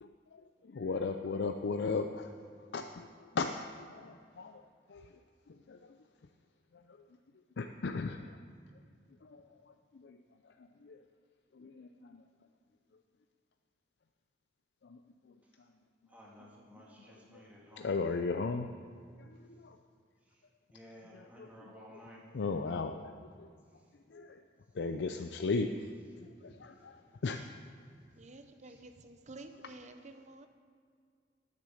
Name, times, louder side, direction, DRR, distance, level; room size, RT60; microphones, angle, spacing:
voice 1, 0.0-2.3 2.7-4.6 4.9-5.1 5.5-6.0 6.7-7.0 7.6-8.4 9.2-10.2 10.6-11.0 11.5-12.2 14.8-15.0 15.3-15.4 16.7-17.4 17.7-18.7 19.2-19.8 21.1-21.7 22.3-23.5 24.1-24.4 24.7-25.7 26.2-27.4, left 4 dB, 70° left, 6 dB, 0.5 m, -37 dB
voice 2, 16.1-18.0 20.7-22.2 28.6-28.8, equal, 10° right, -4 dB, 1.8 m, -54 dB
voice 3, 28.2-30.5, right 2 dB, 40° right, 8 dB, 0.7 m, -51 dB
9.5 x 8.3 x 7.0 m, 2.2 s
head